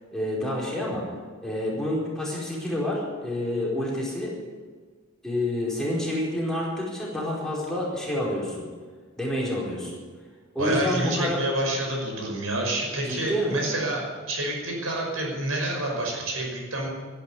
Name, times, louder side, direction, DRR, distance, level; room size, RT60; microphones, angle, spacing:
voice 1, 0.1-1.0 1.4-4.3 5.2-8.6 9.2-9.9 10.5-11.4 13.0-13.6, left 1 dB, ahead, -6 dB, 4.6 m, -28 dB
voice 2, 10.6-16.9, right 1 dB, 85° right, -1 dB, 5.7 m, -28 dB
13.0 x 11.5 x 9.4 m, 1.5 s
head